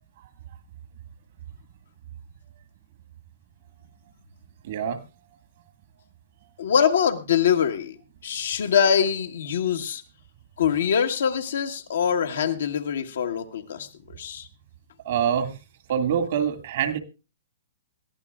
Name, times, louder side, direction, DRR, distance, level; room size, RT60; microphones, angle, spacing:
voice 1, 4.6-5.0 15.1-15.6 15.9-17.0, right 8 dB, 60° right, 9 dB, 1.8 m, -25 dB
voice 2, 6.6-8.0 8.2-10.0 10.6-14.5, left 8 dB, 70° left, 5 dB, 1.4 m, -24 dB
21.5 x 14.5 x 2.4 m, 0.30 s
hypercardioid pair, 120°, 0 cm